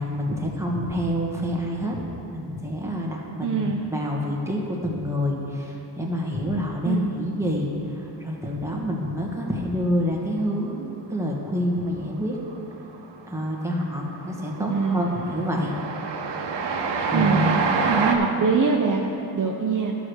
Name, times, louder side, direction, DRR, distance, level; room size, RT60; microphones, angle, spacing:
voice 1, 0.0-2.0 2.3-12.4 13.3-15.8 17.1-17.5, equal, 5° right, -2 dB, 1.8 m, -27 dB
voice 2, 3.4-3.8 6.9-7.1 14.6-15.3 17.1-20.0, right 5 dB, 45° right, 0 dB, 0.8 m, -24 dB
Train, 12.5-12.9 13.2-18.2, right 4 dB, 70° right, 1.0 m, -27 dB
12.0 x 5.1 x 6.4 m, 2.9 s
cardioid pair, 75°, 43 cm